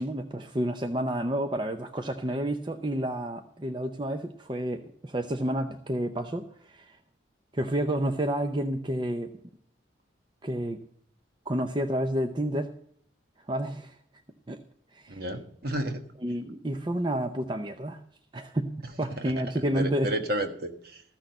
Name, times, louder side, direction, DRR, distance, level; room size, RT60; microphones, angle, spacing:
voice 1, 0.0-7.0 7.5-9.3 10.4-10.8 11.5-12.7 13.5-14.0 14.5-14.6 14.9-15.2 16.2-18.0 18.3-20.1, right 1 dB, 25° right, 6 dB, 0.6 m, -30 dB
voice 2, 15.1-16.0 19.2-19.3 19.7-21.0, right 1 dB, 50° right, 6 dB, 1.4 m, -31 dB
14.5 x 6.4 x 7.6 m, 0.64 s
head